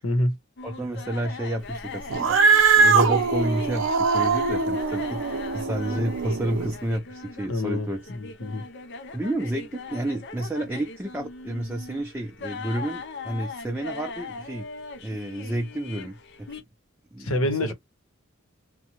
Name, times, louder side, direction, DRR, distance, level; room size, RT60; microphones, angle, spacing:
voice 1, 0.0-0.4 5.7-6.1 7.5-8.7 17.2-17.7, left 1 dB, 85° left, 0.9 m, -27 dB
sound 1, 0.6-16.6, left 4 dB, 55° left, 0.5 m, -40 dB
voice 2, 0.6-2.4 2.8-8.1 9.1-14.7 15.0-16.6 17.1-17.7, right 1 dB, 10° right, 0.4 m, -30 dB
Cat, 2.1-6.7, right 4 dB, 65° right, 0.5 m, -22 dB
2.8 x 2.2 x 2.9 m
head